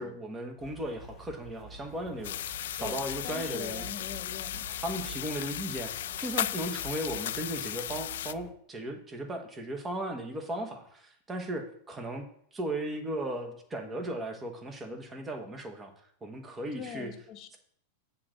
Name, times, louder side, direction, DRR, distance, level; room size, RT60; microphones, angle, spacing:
voice 1, 0.0-3.9 4.8-12.2 12.5-15.9 16.2-17.1, right 1 dB, 15° right, 4 dB, 1.2 m, -36 dB
sound 1, 0.6-8.5, right 1 dB, 20° left, 1.4 m, -48 dB
sound 2, 2.2-8.3, left 12 dB, 75° left, 0.3 m, -36 dB
voice 2, 2.8-4.7 16.7-17.6, left 8 dB, 35° left, 7 dB, 1.1 m, -43 dB
8.3 x 3.8 x 6.6 m, 0.65 s
supercardioid pair, 145°, 0 cm